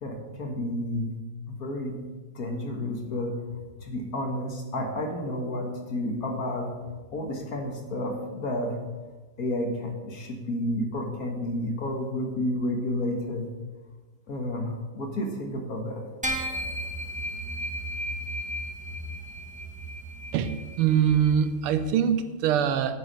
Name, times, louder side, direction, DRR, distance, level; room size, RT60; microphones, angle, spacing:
voice 1, 0.0-1.2 1.5-2.0 2.3-6.7 7.1-8.8 9.4-13.5 14.3-16.1, left 1 dB, 45° left, 3 dB, 1.6 m, -31 dB
sound 1, 16.2-21.8, equal, 10° right, 0.3 m, -35 dB
voice 2, 20.3-23.0, right 8 dB, 85° right, 10 dB, 1.7 m, -24 dB
9.4 x 8.8 x 5.3 m, 1.3 s
omnidirectional pair, 2.4 m